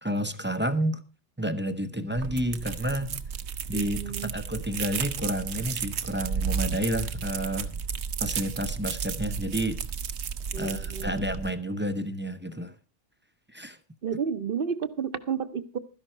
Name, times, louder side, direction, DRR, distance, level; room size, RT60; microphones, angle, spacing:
voice 1, 0.0-1.0 1.4-3.2 3.7-7.8 8.2-9.8 10.6-12.7 13.5-13.8, equal, 15° right, 10 dB, 0.6 m, -30 dB
sound 1, 2.1-11.5, right 6 dB, 75° right, 1.1 m, -33 dB
voice 2, 3.7-4.3 10.5-11.1 14.0-15.8, right 7 dB, 55° right, 12 dB, 1.0 m, -31 dB
13.0 x 10.5 x 4.4 m, 0.32 s
omnidirectional pair, 1.2 m